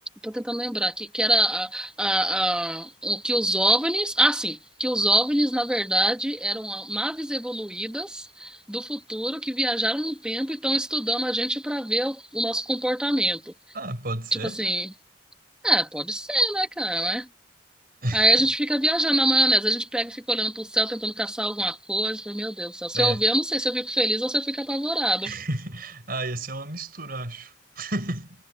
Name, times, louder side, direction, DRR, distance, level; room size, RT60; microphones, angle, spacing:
voice 1, 0.2-13.5 14.3-14.9 15.6-17.3 18.1-25.3, right 1 dB, 5° right, 1.3 m, -25 dB
voice 2, 13.7-14.6 18.0-18.3 22.9-23.2 25.2-28.4, right 1 dB, 50° right, 6.4 m, -32 dB
head